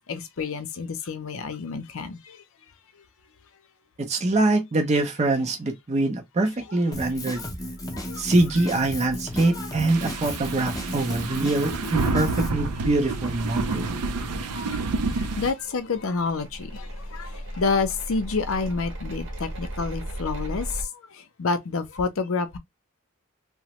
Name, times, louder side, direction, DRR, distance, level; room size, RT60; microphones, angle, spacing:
voice 1, 0.1-2.4 7.4-7.5 8.1-8.2 11.3-11.4 14.3-14.8 15.4-17.3 17.6-20.7 21.4-22.6, left 4 dB, 60° left, 0.5 m, -28 dB
voice 2, 4.0-7.4 8.2-14.0, right 2 dB, 30° right, 0.5 m, -24 dB
Drum kit, 6.9-12.5, equal, 15° left, 0.6 m, -34 dB
sound 1, 9.9-15.5, right 3 dB, 90° right, 0.5 m, -29 dB
sound 2, 12.9-20.8, right 1 dB, 55° right, 0.9 m, -38 dB
3.0 x 2.0 x 2.9 m
head